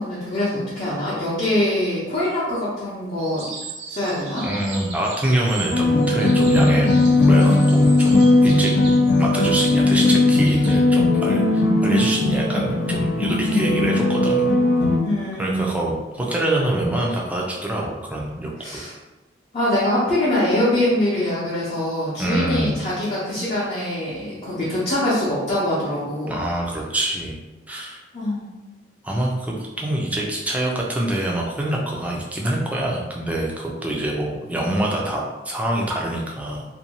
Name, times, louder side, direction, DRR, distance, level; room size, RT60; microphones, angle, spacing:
voice 1, 0.0-3.5 3.9-4.5 13.5-13.7 15.0-15.6 18.6-18.9 19.5-26.4 28.1-28.4, left 1 dB, 40° left, -9 dB, 0.7 m, -23 dB
sound 1, 3.2-10.8, right 4 dB, 90° right, 0.6 m, -38 dB
voice 2, 4.4-6.9 7.3-8.7 9.2-14.4 15.4-18.8 22.2-22.8 26.3-27.3 27.7-28.0 29.0-36.7, right 1 dB, 10° right, -2 dB, 0.4 m, -25 dB
sound 2, 5.7-15.0, left 2 dB, 75° left, 0.4 m, -17 dB
2.6 x 2.2 x 2.9 m, 1.1 s
head